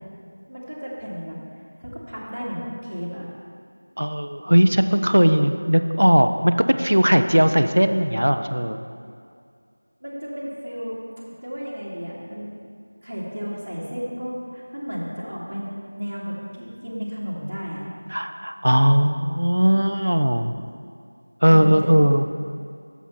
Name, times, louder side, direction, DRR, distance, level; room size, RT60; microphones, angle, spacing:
voice 1, 0.5-1.4 1.8-3.3 10.0-11.0 11.4-12.5 13.0-17.9 21.5-21.9, equal, 40° right, -6 dB, 1.9 m, -33 dB
voice 2, 4.0-8.8 18.1-20.5 21.4-22.3, equal, 75° right, 9 dB, 0.5 m, -18 dB
7.2 x 7.0 x 5.6 m, 2.3 s
figure-of-eight pair, 180°, 0 cm